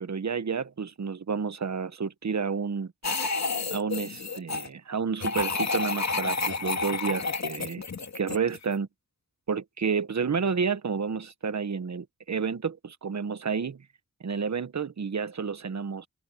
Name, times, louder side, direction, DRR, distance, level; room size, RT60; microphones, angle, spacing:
voice 1, 0.0-2.9 3.7-7.8 8.1-8.9 9.5-13.8 14.2-16.1, right 5 dB, 55° right, 1.3 m, -30 dB
sound 1, 3.0-4.7 5.2-8.7, left 4 dB, 55° left, 2.6 m, -30 dB
cardioid pair, 60°, 33 cm